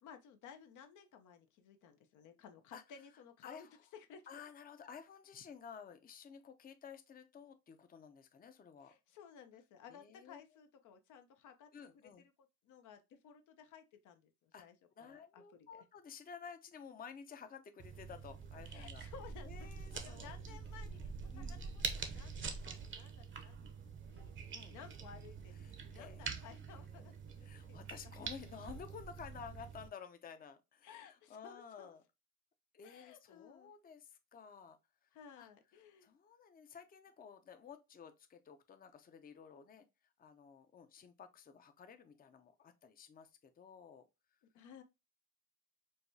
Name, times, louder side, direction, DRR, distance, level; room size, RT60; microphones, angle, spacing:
voice 1, 0.0-3.7 3.9-4.2 8.8-11.7 12.6-14.7 15.0-15.4 15.7-15.8 18.6-23.7 24.1-25.6 25.9-27.8 30.8-31.9 32.8-33.7 35.1-36.1 44.5-44.8, left 7 dB, 80° left, 0.6 m, -57 dB
voice 2, 4.3-8.9 9.9-10.6 11.7-12.2 14.5-14.6 15.0-19.0 19.4-20.6 21.3-21.6 24.5-24.7 25.6-27.1 27.4-32.0 32.7-34.8 35.0-35.1 35.4-35.5 36.0-39.9 40.2-44.1, left 6 dB, 30° left, 0.5 m, -53 dB
sound 1, 17.8-29.9, right 5 dB, 40° right, 0.7 m, -46 dB
4.7 x 2.2 x 2.6 m
cardioid pair, 90°, 30 cm